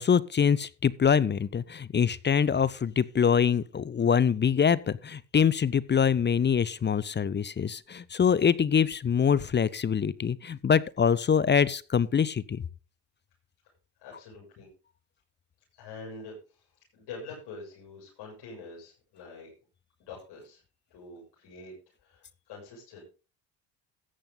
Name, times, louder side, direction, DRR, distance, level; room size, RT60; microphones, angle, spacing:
voice 1, 0.0-12.6, left 7 dB, 25° left, 0.6 m, -24 dB
voice 2, 14.0-14.7 15.7-19.5 20.0-20.6 20.9-21.7 22.0-23.0, left 3 dB, 65° left, 6.8 m, -45 dB
14.0 x 8.8 x 3.9 m
supercardioid pair, 80°, 43 cm